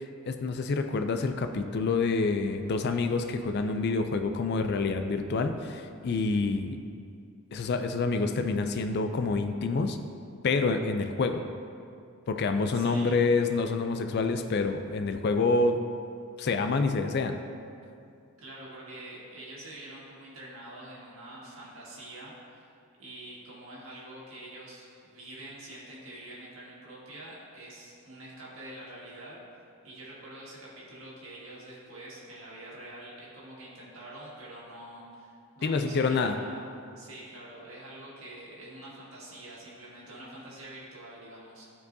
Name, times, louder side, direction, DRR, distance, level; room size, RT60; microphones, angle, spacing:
voice 1, 0.3-6.8 7.5-10.0 10.4-11.4 12.3-15.8 16.4-17.4 35.6-36.4, left 3 dB, 50° left, 8 dB, 0.4 m, -27 dB
voice 2, 12.7-13.1 18.4-22.7 23.0-29.4 29.8-41.6, right 1 dB, 65° right, -6 dB, 1.8 m, -46 dB
13.5 x 4.6 x 2.7 m, 2.5 s
head